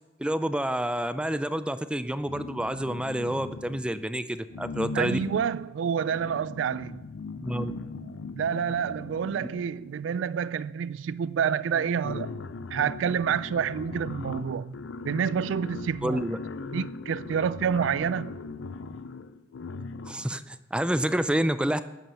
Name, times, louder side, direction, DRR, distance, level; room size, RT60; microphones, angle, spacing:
voice 1, 0.2-5.2 7.4-7.7 16.0-16.4 20.1-21.8, right 1 dB, 5° right, 0.4 m, -28 dB
sound 1, 2.2-4.0 4.5-10.2 11.1-11.2 11.5-20.4, left 3 dB, 85° left, 0.5 m, -39 dB
voice 2, 4.9-7.0 8.3-12.4 12.7-14.8 15.0-16.2 16.7-18.3, right 7 dB, 85° right, 0.3 m, -28 dB
12.5 x 9.1 x 5.6 m
head